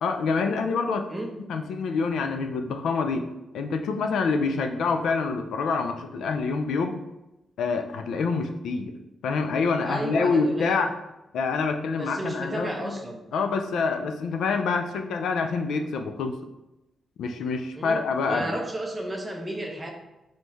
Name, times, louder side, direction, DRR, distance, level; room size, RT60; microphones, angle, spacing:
voice 1, 0.0-1.1 1.5-3.3 3.5-6.9 7.6-8.9 9.2-10.9 11.3-13.0 13.3-16.3 17.2-18.6, left 4 dB, 85° left, 6 dB, 0.4 m, -26 dB
voice 2, 9.8-10.8 12.0-13.2 17.7-19.9, right 1 dB, 10° right, 1 dB, 0.6 m, -33 dB
4.3 x 3.2 x 3.4 m, 0.96 s
wide cardioid pair, 160°, 0 cm